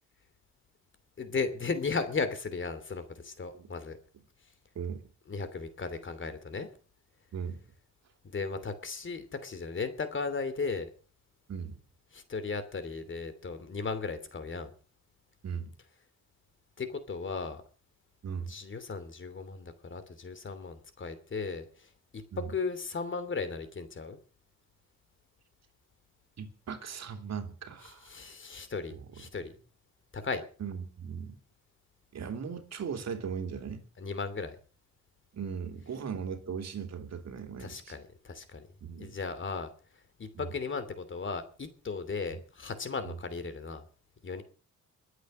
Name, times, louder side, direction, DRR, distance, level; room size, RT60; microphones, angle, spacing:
voice 1, 1.2-4.0 5.3-6.7 8.2-10.9 12.1-14.7 16.8-17.6 18.5-24.2 27.8-29.5 30.1-30.5 34.0-34.6 37.6-38.6 39.0-39.7 40.2-43.8 44.2-44.4, left 4 dB, 40° left, 11 dB, 2.9 m, -36 dB
voice 2, 7.3-7.6 11.5-11.8 15.4-15.7 18.2-18.6 22.3-22.5 26.4-28.1 28.9-29.0 30.6-31.4 32.1-33.8 35.3-37.9 38.8-39.2 40.3-40.5 43.0-43.1, right 6 dB, 60° right, 6 dB, 2.8 m, -38 dB
22.0 x 8.1 x 6.4 m, 0.40 s
cardioid pair, 100°, 30 cm